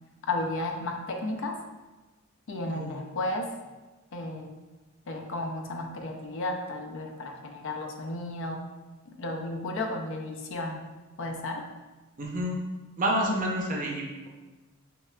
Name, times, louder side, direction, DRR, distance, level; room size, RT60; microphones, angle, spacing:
voice 1, 0.3-1.6 2.5-3.5 4.1-4.6 5.1-8.6 9.2-10.8 11.2-11.6, left 2 dB, 60° left, 3 dB, 0.4 m, -33 dB
voice 2, 2.7-3.0 12.2-12.6 13.0-14.3, right 1 dB, 40° right, -1 dB, 0.6 m, -29 dB
5.4 x 2.4 x 2.2 m, 1.2 s
head